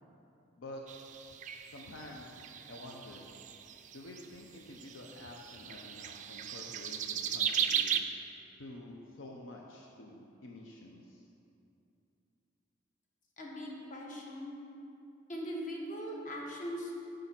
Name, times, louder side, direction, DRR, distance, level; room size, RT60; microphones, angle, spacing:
sound 1, 0.9-4.3 4.7-8.0, right 8 dB, 40° right, 0.3 m, -36 dB
voice 1, 1.7-2.4 2.7-3.2 3.9-7.8 8.6-11.3, left 1 dB, 70° left, -1 dB, 0.6 m, -49 dB
voice 2, 13.4-14.5 15.3-16.9, equal, 40° left, -2 dB, 1.1 m, -40 dB
8.5 x 3.9 x 5.9 m, 2.7 s
head